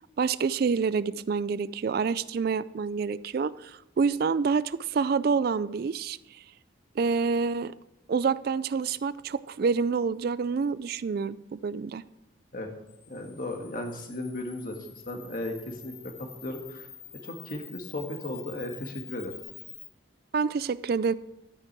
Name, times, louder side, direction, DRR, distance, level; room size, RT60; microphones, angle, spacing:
voice 1, 0.2-6.2 7.0-7.7 8.1-12.0 20.3-21.1, right 5 dB, 50° right, 17 dB, 0.3 m, -27 dB
Camera, 12.9-19.9, left 9 dB, 80° left, 1.8 m, -47 dB
voice 2, 13.1-16.9 17.2-19.3, left 1 dB, 45° left, 3 dB, 1.6 m, -36 dB
12.5 x 9.6 x 4.6 m, 0.88 s
head